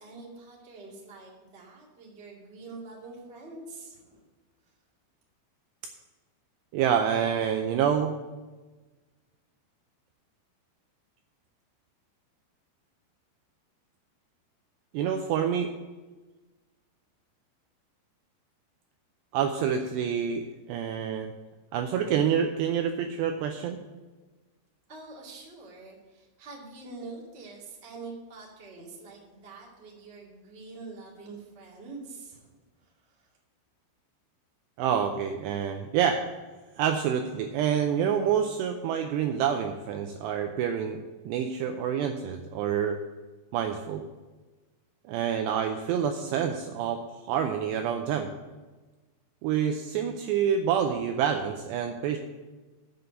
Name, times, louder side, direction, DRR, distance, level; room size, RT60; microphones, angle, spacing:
voice 1, 0.0-4.3 24.9-33.3, right 3 dB, 40° right, -4 dB, 0.9 m, -45 dB
voice 2, 6.7-8.1 14.9-15.7 19.3-21.3 21.7-23.8 34.8-36.2 36.8-41.0 41.3-43.0 43.5-44.1 45.1-48.3 49.4-52.2, right 8 dB, 85° right, 5 dB, 2.5 m, -27 dB
7.8 x 6.8 x 7.7 m, 1.3 s
omnidirectional pair, 5.4 m